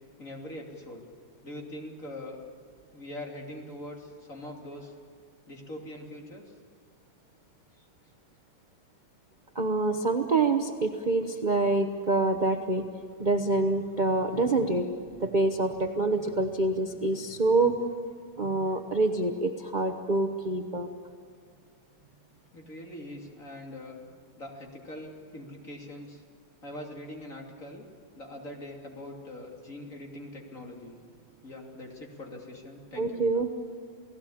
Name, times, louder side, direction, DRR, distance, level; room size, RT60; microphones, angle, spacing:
voice 1, 0.2-1.0 1.4-2.4 2.9-4.9 5.5-6.5 7.7-7.8 22.5-24.0 24.4-26.2 26.6-27.8 28.1-31.0 31.4-33.2, left 1 dB, 40° left, 0 dB, 3.4 m, -42 dB
voice 2, 9.5-12.9 13.2-14.9 15.2-17.8 18.4-20.9 33.0-33.5, right 2 dB, 30° right, 5 dB, 0.9 m, -26 dB
29.5 x 18.0 x 8.6 m, 2.2 s
omnidirectional pair, 2.2 m